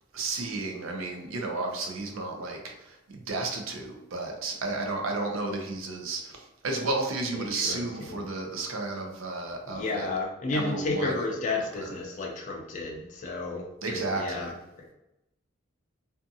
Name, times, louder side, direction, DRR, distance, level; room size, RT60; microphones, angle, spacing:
voice 1, 0.1-10.1 10.5-11.2 11.7-11.9 13.8-14.6, right 3 dB, 80° right, 2 dB, 0.6 m, -33 dB
voice 2, 7.3-7.8 8.1-8.2 9.7-14.5, left 3 dB, 40° left, -1 dB, 0.4 m, -32 dB
2.5 x 2.4 x 2.6 m, 0.90 s
head